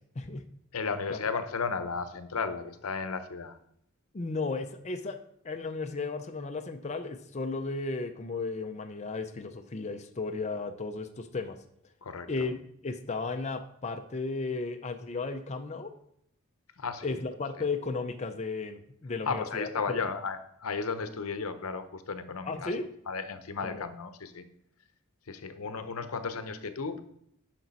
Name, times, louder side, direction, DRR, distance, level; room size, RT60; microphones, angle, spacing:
voice 1, 0.7-3.6 12.0-12.5 16.8-17.2 19.3-22.7 23.1-24.4 25.3-27.0, left 5 dB, 80° left, 10 dB, 0.7 m, -34 dB
voice 2, 4.1-5.2 5.4-11.6 12.3-15.9 17.0-20.1 22.5-22.9 23.6-23.8, left 3 dB, 30° left, 5 dB, 0.5 m, -34 dB
10.0 x 6.0 x 4.1 m, 0.73 s
head